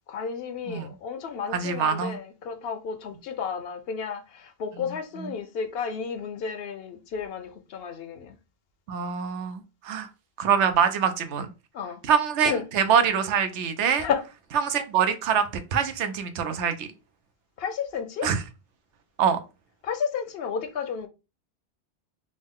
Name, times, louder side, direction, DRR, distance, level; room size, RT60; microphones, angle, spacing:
voice 1, 0.1-8.3 11.7-12.0 12.4-12.6 14.0-14.2 17.6-18.3 19.8-21.1, left 6 dB, 65° left, 0.7 m, -32 dB
voice 2, 1.5-2.2 5.2-5.3 8.9-10.1 10.4-11.5 12.1-14.1 14.6-16.9 18.2-18.4 19.2-19.4, right 7 dB, 90° right, 0.9 m, -24 dB
3.7 x 2.1 x 3.5 m
omnidirectional pair, 1.2 m